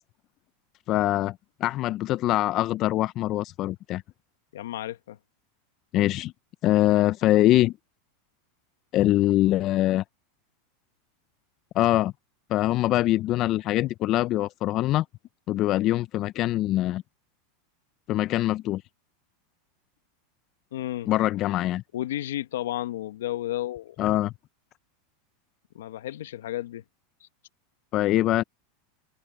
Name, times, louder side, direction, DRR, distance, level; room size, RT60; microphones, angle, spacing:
voice 1, 0.9-1.4 1.6-4.0 5.9-6.3 6.6-7.7 8.9-10.0 11.7-12.1 12.5-15.0 15.5-17.0 18.1-18.8 21.1-21.8 24.0-24.3 27.9-28.4, left 15 dB, 45° left, 0.5 m, -23 dB
voice 2, 4.5-5.2 20.7-21.1 21.9-23.9 25.7-26.8, left 13 dB, 85° left, 1.3 m, -32 dB
supercardioid pair, 120°, 0 cm